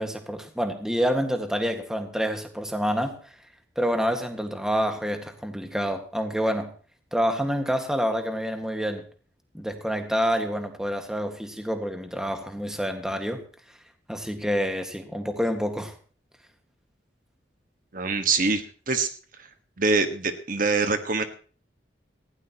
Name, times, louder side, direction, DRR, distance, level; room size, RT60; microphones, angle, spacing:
voice 1, 0.0-3.2 3.8-6.7 7.1-9.0 9.5-13.4 14.1-15.9, equal, 5° right, 1.7 m, -27 dB
voice 2, 17.9-19.1 19.8-21.2, right 4 dB, 50° right, 1.5 m, -24 dB
19.0 x 16.5 x 3.0 m
head